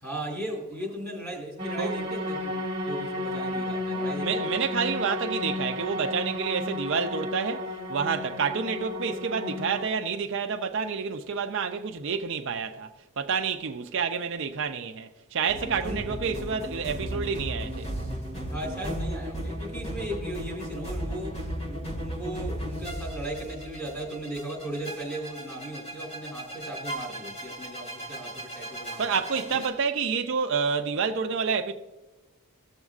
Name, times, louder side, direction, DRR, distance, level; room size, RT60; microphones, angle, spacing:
voice 1, 0.0-2.6 2.9-4.7 15.8-16.0 18.5-29.6, right 1 dB, 10° left, 2.9 m, -37 dB
sound 1, 1.6-9.9, left 1 dB, 20° right, 1.2 m, -32 dB
voice 2, 4.2-17.9 29.0-31.7, right 6 dB, 55° right, 0.5 m, -29 dB
sound 2, 15.5-29.7, equal, 30° left, 1.9 m, -36 dB
16.0 x 7.1 x 2.4 m
head